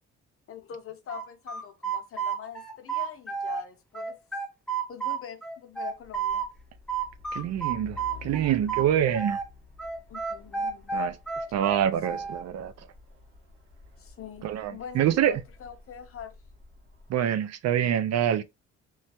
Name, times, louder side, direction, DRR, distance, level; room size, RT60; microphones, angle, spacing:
voice 1, 0.5-4.2 4.9-6.5 10.1-11.0 12.1-12.3 14.0-16.4, left 8 dB, 50° left, 0.7 m, -43 dB
sound 1, 1.1-3.6 3.9-6.5 6.9-9.5 9.8-12.4, right 6 dB, 5° left, 0.8 m, -31 dB
Truck, 5.9-17.3, left 6 dB, 45° right, 1.3 m, -50 dB
voice 2, 7.3-9.4 10.9-11.2 11.5-12.7 14.4-15.4 17.1-18.4, right 10 dB, 60° right, 0.4 m, -26 dB
3.0 x 2.2 x 2.8 m
cardioid pair, 90°, 30 cm